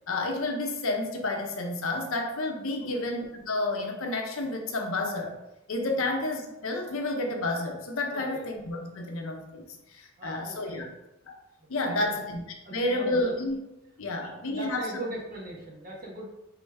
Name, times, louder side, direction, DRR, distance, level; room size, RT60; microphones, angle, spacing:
voice 1, 0.1-5.3 5.7-10.9 11.3-11.4 11.7-12.4 12.7-13.6 14.0-14.9, left 2 dB, 65° left, 2 dB, 0.7 m, -30 dB
voice 2, 8.1-8.4 10.2-10.9 11.6-12.2 12.6-13.3 14.2-16.3, right 1 dB, 40° right, -2 dB, 1.1 m, -40 dB
5.0 x 3.1 x 3.3 m, 0.93 s
head